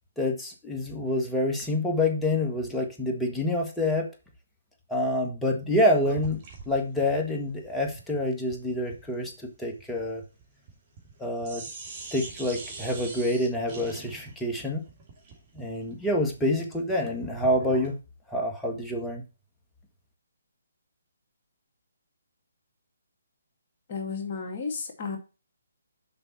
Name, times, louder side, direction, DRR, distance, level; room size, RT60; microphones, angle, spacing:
voice 1, 0.2-4.1 4.9-6.4 6.7-9.3 9.6-10.2 11.2-11.6 12.1-14.8 15.6-18.0 18.3-19.2, left 1 dB, 5° left, 1 dB, 1.7 m, -27 dB
sound 1, 6.0-11.2 11.4-18.0, right 4 dB, 30° right, 2.8 m, -44 dB
voice 2, 23.9-25.2, left 5 dB, 40° left, 2 dB, 2.2 m, -33 dB
6.8 x 5.4 x 4.6 m, 0.30 s
figure-of-eight pair, 145°, 0 cm